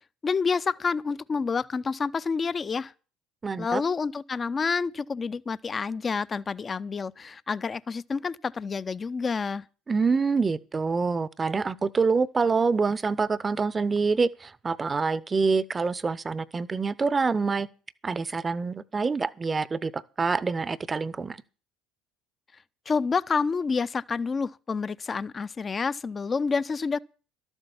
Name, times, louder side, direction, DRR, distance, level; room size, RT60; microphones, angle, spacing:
voice 1, 0.2-2.9 3.6-9.7 22.9-27.0, left 5 dB, 30° left, 0.5 m, -28 dB
voice 2, 3.4-3.8 9.9-17.7 18.0-21.4, right 4 dB, 25° right, 0.7 m, -26 dB
12.5 x 8.1 x 7.0 m
hypercardioid pair, 65°, 0 cm